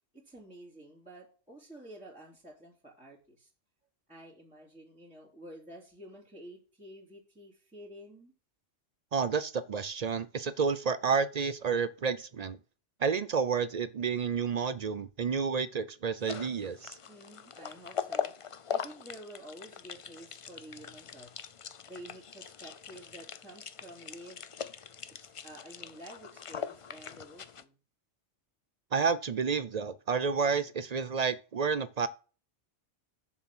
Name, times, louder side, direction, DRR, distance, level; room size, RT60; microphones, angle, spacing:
voice 1, 0.1-3.5 4.1-8.3 17.1-24.4 25.2-27.8, right 1 dB, 5° right, 2.9 m, -50 dB
voice 2, 9.1-12.6 13.0-17.0 28.9-32.1, right 5 dB, 50° right, 0.5 m, -30 dB
sound 1, 16.2-27.6, left 7 dB, 55° left, 0.3 m, -41 dB
7.3 x 6.1 x 6.1 m
omnidirectional pair, 1.2 m